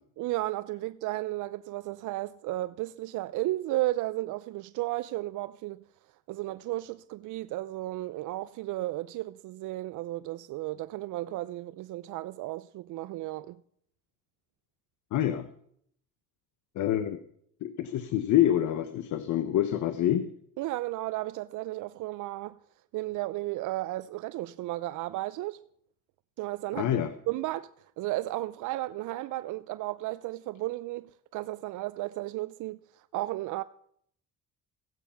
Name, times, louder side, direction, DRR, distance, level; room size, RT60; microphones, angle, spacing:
voice 1, 0.2-5.8 6.3-13.6 20.6-22.6 22.9-25.6 26.4-33.6, right 17 dB, 85° right, 0.5 m, -34 dB
voice 2, 15.1-15.5 16.8-17.2 17.6-20.3 26.7-27.1, left 11 dB, 75° left, 0.9 m, -26 dB
15.5 x 8.5 x 5.7 m
cardioid pair, 90°, 30 cm